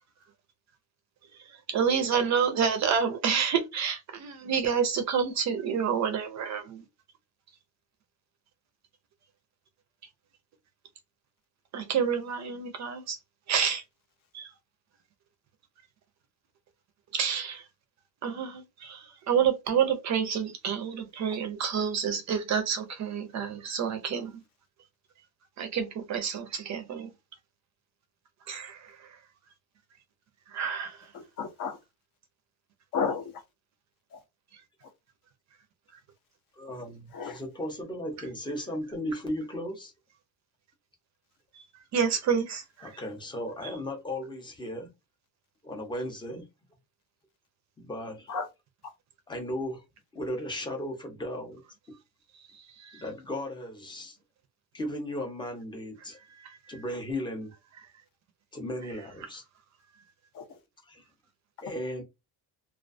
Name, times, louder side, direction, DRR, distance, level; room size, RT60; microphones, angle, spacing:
voice 1, 1.5-6.8 11.7-13.2 13.5-13.8 14.3-14.5 17.1-17.7 18.2-24.4 25.6-27.1 28.5-29.1 30.5-31.1 41.9-42.9 52.5-53.0 56.4-56.6, right 7 dB, 40° right, 0.4 m, -29 dB
voice 2, 31.1-31.8 32.9-33.4 34.1-34.2 37.1-37.4 48.3-48.5 60.3-60.6, left 5 dB, 50° left, 0.6 m, -32 dB
voice 3, 36.6-39.9 42.8-44.9 45.6-46.4 47.8-48.3 49.3-49.8 50.1-51.6 51.9-52.0 52.9-54.2 54.7-56.2 56.7-57.5 58.5-59.4 60.9-61.0 61.6-62.0, left 1 dB, 10° left, 0.5 m, -36 dB
2.3 x 2.2 x 2.4 m
cardioid pair, 165°, 43 cm